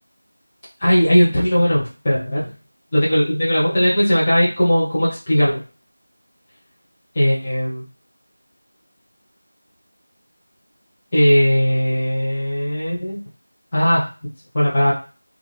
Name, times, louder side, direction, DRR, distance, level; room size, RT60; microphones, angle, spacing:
voice 1, 0.8-2.5 2.9-5.6 7.1-7.8 11.1-13.2 13.7-14.0 14.5-14.9, equal, 15° left, -9 dB, 0.7 m, -18 dB
3.1 x 2.4 x 3.1 m, 0.35 s
figure-of-eight pair, 175°, 0 cm